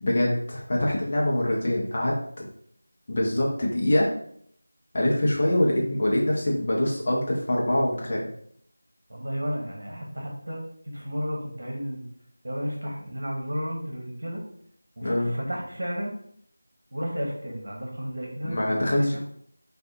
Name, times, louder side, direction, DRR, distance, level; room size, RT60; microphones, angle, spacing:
voice 1, 0.0-2.4 3.1-4.1 4.9-8.2 15.0-15.3 18.4-19.2, left 1 dB, 35° left, -3 dB, 0.8 m, -24 dB
voice 2, 9.1-12.1 12.4-14.4 15.0-16.1 16.9-19.2, equal, 60° right, -1 dB, 1.2 m, -33 dB
6.1 x 2.6 x 2.7 m, 0.64 s
figure-of-eight pair, 170°, 0 cm